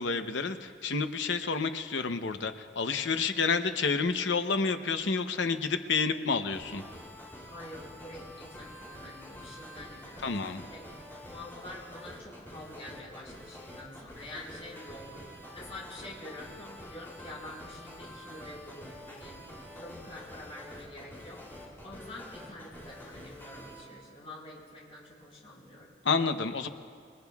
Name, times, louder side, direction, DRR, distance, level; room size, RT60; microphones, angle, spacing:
voice 1, 0.0-6.8 10.2-10.7 26.0-26.7, left 4 dB, 85° left, 9 dB, 0.8 m, -29 dB
sound 1, 6.5-23.8, left 1 dB, 15° left, 3.0 m, -47 dB
voice 2, 7.5-19.4 19.7-21.4 21.8-25.9, left 1 dB, 35° left, -5 dB, 4.8 m, -47 dB
27.0 x 22.0 x 2.4 m, 2.4 s
head